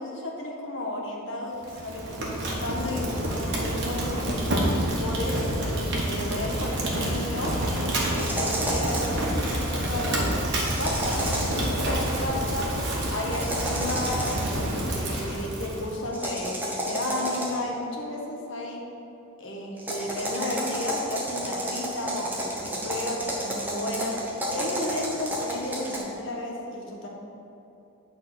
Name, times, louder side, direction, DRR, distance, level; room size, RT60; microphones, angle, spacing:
voice 1, 0.0-4.2 4.7-7.5 8.1-12.7 13.1-18.8 19.4-27.1, left 1 dB, 55° left, -1 dB, 1.2 m, -33 dB
Fire, 1.6-16.0, right 1 dB, 55° right, 1.5 m, -28 dB
sound 1, 8.2-9.2 10.6-11.6 13.3-14.6 16.1-17.7 19.8-26.0, right 1 dB, 10° right, 0.9 m, -31 dB
8.9 x 4.3 x 6.1 m, 2.8 s
head